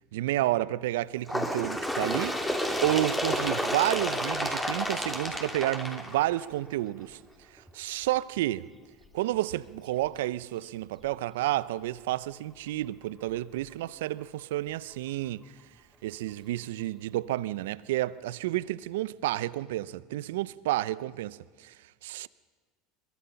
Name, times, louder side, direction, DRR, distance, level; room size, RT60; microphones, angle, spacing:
voice 1, 0.1-7.2 7.7-8.6 9.1-15.4 16.0-21.7 22.0-22.3, right 15 dB, 80° right, 0.6 m, -30 dB
Bird, 1.3-6.7 7.6-7.7 8.1-8.2 9.0-9.1 10.0-10.1 11.0-11.1, equal, 10° left, 3.0 m, -31 dB
22.5 x 22.0 x 5.7 m
hypercardioid pair, 90°, 0 cm